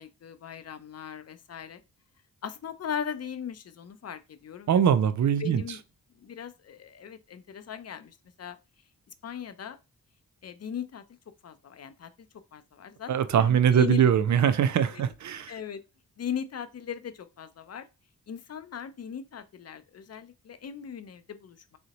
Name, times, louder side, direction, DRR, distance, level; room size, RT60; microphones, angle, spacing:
voice 1, 0.0-1.8 2.4-4.8 5.4-5.8 6.2-8.6 9.2-9.8 10.4-11.0 11.4-12.1 12.5-14.1 14.8-15.1 15.5-15.8 16.2-17.8 18.3-21.6, left 8 dB, 45° left, 0.5 m, -38 dB
voice 2, 4.7-5.6 13.1-15.5, right 8 dB, 55° right, 0.4 m, -22 dB
3.7 x 2.1 x 2.8 m
cardioid pair, 50°, 35 cm